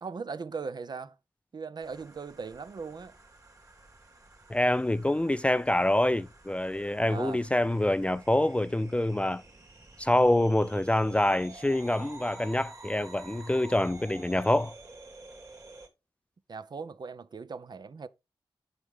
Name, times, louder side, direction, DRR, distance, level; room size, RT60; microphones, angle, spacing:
voice 1, 0.0-1.2 1.5-3.1 7.1-7.4 16.5-18.1, right 5 dB, 50° right, 0.6 m, -39 dB
sound 1, 1.8-15.9, right 3 dB, 35° right, 2.7 m, -51 dB
voice 2, 4.5-9.4 10.0-14.7, left 1 dB, 15° left, 0.4 m, -26 dB
7.9 x 6.6 x 3.6 m
cardioid pair, 80°, 9 cm